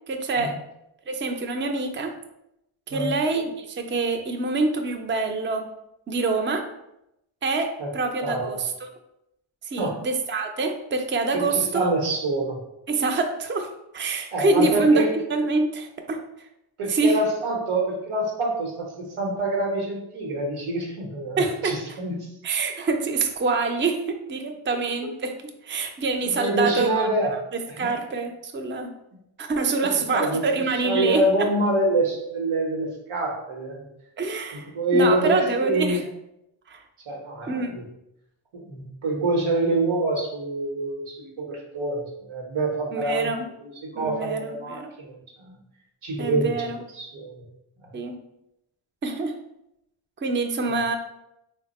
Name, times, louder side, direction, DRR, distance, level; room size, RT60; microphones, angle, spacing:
voice 1, 0.1-0.6 1.1-2.1 2.9-5.7 6.1-6.6 7.4-8.9 9.6-11.9 12.9-16.2 16.9-17.2 21.4-22.0 22.4-25.4 25.6-28.9 29.4-31.5 34.2-36.0 36.7-36.8 37.5-37.7 42.9-43.5 43.9-44.9 46.2-46.8 47.9-48.2 49.0-49.4 50.2-51.0, right 3 dB, 25° right, 5 dB, 0.4 m, -26 dB
voice 2, 8.2-8.6 9.8-10.0 11.3-12.6 14.3-15.1 16.8-22.3 26.2-27.3 27.8-27.9 29.9-30.4 30.8-33.8 34.7-36.0 37.1-37.8 38.6-43.3 43.6-45.6 46.0-47.4 50.7-50.8, right 2 dB, 85° right, 0 dB, 1.0 m, -26 dB
3.3 x 2.1 x 4.0 m, 0.84 s
cardioid pair, 65°, 48 cm